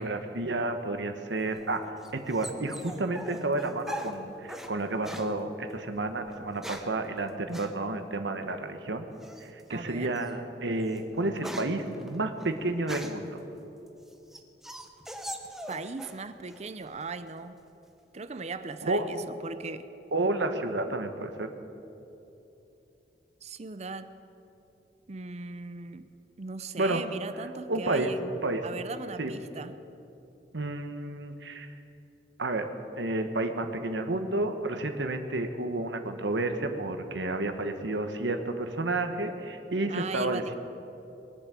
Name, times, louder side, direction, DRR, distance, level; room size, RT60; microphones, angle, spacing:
voice 1, 0.0-1.8 2.1-9.1 9.4-13.4 18.8-19.1 20.1-21.5 26.8-27.0 27.7-28.1 28.4-28.6 29.2-29.4 30.5-31.7 32.4-40.5, right 2 dB, 85° right, 7 dB, 1.2 m, -31 dB
sound 1, 1.4-4.7 5.0-5.3 6.3-7.0 7.5-7.7 9.2-9.6 10.1-10.3 10.7-13.3 13.9-16.2 16.5-17.1, equal, ahead, 0.9 m, -41 dB
voice 2, 9.7-10.1 15.7-17.6 18.1-19.9 23.4-24.1 25.1-26.1 26.4-28.3 28.6-29.8 39.9-40.5, right 4 dB, 40° right, 12 dB, 0.6 m, -38 dB
21.0 x 8.6 x 7.6 m, 2.9 s
head